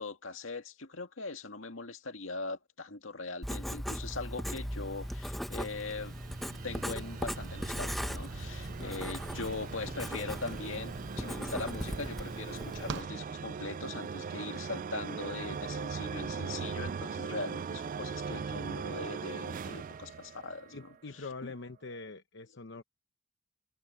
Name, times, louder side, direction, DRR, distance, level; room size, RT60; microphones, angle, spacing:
voice 1, 0.0-6.2 6.6-21.0 21.4-21.5, left 3 dB, 80° left, 2.1 m, -41 dB
Writing, 3.4-13.0, equal, ahead, 0.7 m, -39 dB
sound 1, 4.8-21.0, right 5 dB, 40° right, 0.3 m, -40 dB
voice 2, 8.8-9.1 20.7-22.8, left 3 dB, 60° left, 0.9 m, -44 dB
sound 2, 12.4-14.1, right 5 dB, 60° right, 0.9 m, -46 dB
head